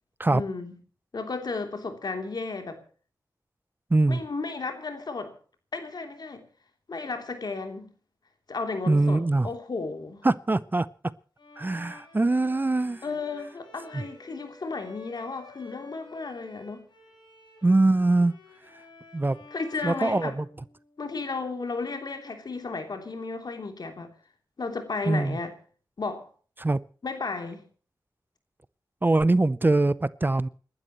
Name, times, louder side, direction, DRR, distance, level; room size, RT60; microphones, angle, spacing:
voice 1, 0.3-0.7 1.1-2.8 4.1-5.4 5.7-6.4 6.9-7.9 8.5-10.3 13.0-16.8 19.5-20.3 21.0-24.1 24.6-25.5 26.0-26.3 27.0-27.6, left 4 dB, 65° left, 3.1 m, -34 dB
voice 2, 8.9-9.5 10.2-10.9 11.6-13.0 17.6-18.3 19.1-19.4 19.8-20.5 25.1-25.4 26.6-26.8 29.0-30.5, right 2 dB, 25° right, 0.6 m, -22 dB
Bowed string instrument, 11.4-21.2, left 3 dB, 85° left, 8.0 m, -51 dB
29.0 x 12.0 x 3.0 m
wide cardioid pair, 75°, 8 cm